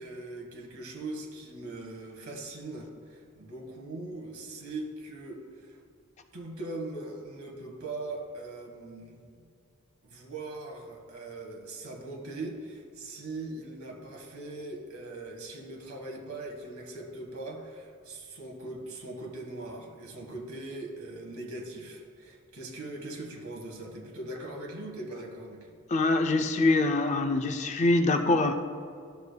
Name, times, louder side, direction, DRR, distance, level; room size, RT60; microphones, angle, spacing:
voice 1, 0.0-5.8 6.3-9.2 10.0-25.7, right 2 dB, 75° right, 0 dB, 1.4 m, -40 dB
voice 2, 25.9-28.5, left 2 dB, 30° left, 7 dB, 0.3 m, -24 dB
12.5 x 6.6 x 2.2 m, 2.3 s
head